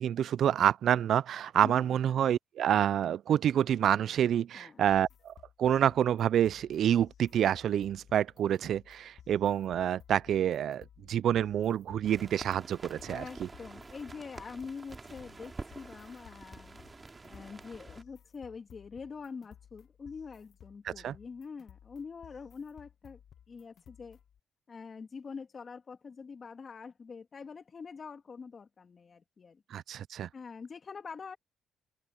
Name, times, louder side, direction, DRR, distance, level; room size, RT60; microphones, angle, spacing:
voice 1, 0.0-5.3 5.6-13.5 20.8-21.1 29.7-30.3, right 10 dB, 70° right, 0.4 m, -28 dB
voice 2, 4.5-4.8 13.1-16.8 17.3-23.2 23.5-24.2 24.7-29.6 30.3-31.4, left 5 dB, 40° left, 2.6 m, -45 dB
sound 1, 4.8-24.4, left 9 dB, 60° left, 1.4 m, -57 dB
sound 2, 12.1-18.0, right 3 dB, 25° right, 2.7 m, -48 dB
cardioid pair, 90°, 0 cm